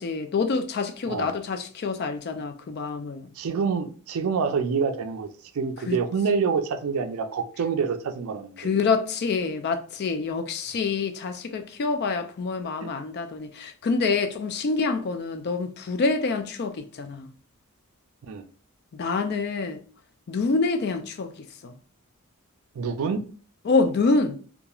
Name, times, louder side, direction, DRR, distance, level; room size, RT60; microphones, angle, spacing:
voice 1, 0.0-3.3 5.9-6.0 8.6-17.3 18.9-19.8 20.3-21.3 21.6-21.7 23.7-24.4, left 4 dB, 50° left, 0.3 m, -26 dB
voice 2, 3.4-5.3 5.5-8.7 12.8-12.9 18.3-18.5 22.8-23.3, right 5 dB, 75° right, 0.4 m, -27 dB
2.9 x 2.4 x 2.3 m
head